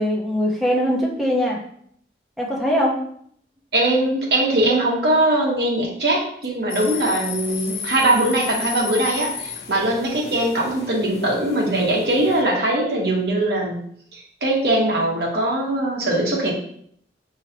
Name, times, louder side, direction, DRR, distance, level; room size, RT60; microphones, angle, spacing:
voice 1, 0.0-1.6 2.4-2.9, equal, ahead, -3 dB, 0.8 m, -21 dB
voice 2, 3.7-13.8 14.1-16.5, right 1 dB, 65° right, -3 dB, 1.3 m, -21 dB
sound 1, 6.7-12.4, left 6 dB, 60° left, 0.5 m, -33 dB
5.6 x 3.1 x 2.8 m, 0.65 s
head